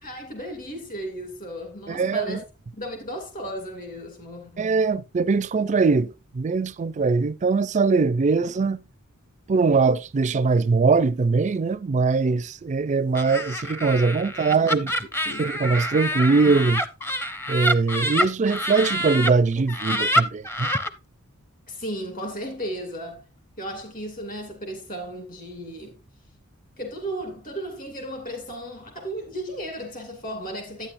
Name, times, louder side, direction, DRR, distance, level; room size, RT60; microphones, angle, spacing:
voice 1, 0.0-2.4 2.7-4.7 15.2-15.4 21.7-23.2 23.6-26.0 26.8-30.9, equal, 40° left, 2.6 m, -35 dB
voice 2, 1.9-2.4 4.6-8.8 9.5-14.9 15.4-16.8 17.5-20.7, right 4 dB, 35° right, 0.4 m, -22 dB
Laughter, 13.1-19.3 19.7-20.9, equal, 10° left, 0.6 m, -26 dB
11.0 x 9.3 x 2.6 m
head